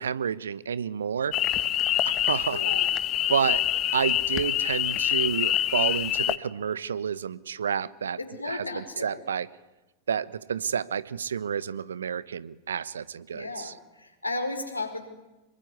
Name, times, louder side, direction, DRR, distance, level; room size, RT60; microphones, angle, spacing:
voice 1, 0.0-1.3 2.3-2.6 3.3-3.6 3.9-8.2 8.4-9.5 10.1-13.7, right 7 dB, 70° right, 19 dB, 1.1 m, -30 dB
sound 1, 1.3-6.4, left 12 dB, 35° left, 1.3 m, -26 dB
voice 2, 2.5-2.8 8.2-9.2 13.3-15.1, left 2 dB, 85° left, 5 dB, 4.7 m, -34 dB
26.5 x 23.0 x 9.5 m, 1.1 s
figure-of-eight pair, 90°, 0 cm